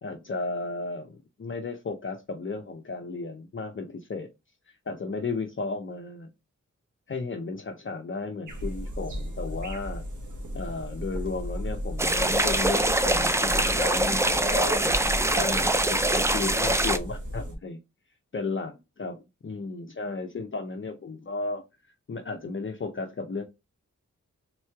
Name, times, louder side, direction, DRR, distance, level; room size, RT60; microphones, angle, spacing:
voice 1, 0.0-4.3 4.9-6.3 7.1-10.0 10.5-14.9 15.4-17.8 18.3-21.6 22.1-23.4, left 3 dB, 40° left, 0.5 m, -34 dB
sound 1, 8.5-17.5, equal, 70° right, 1.1 m, -35 dB
sound 2, 12.0-17.0, right 1 dB, 10° right, 0.3 m, -24 dB
3.6 x 3.0 x 3.3 m
wide cardioid pair, 110°, 31 cm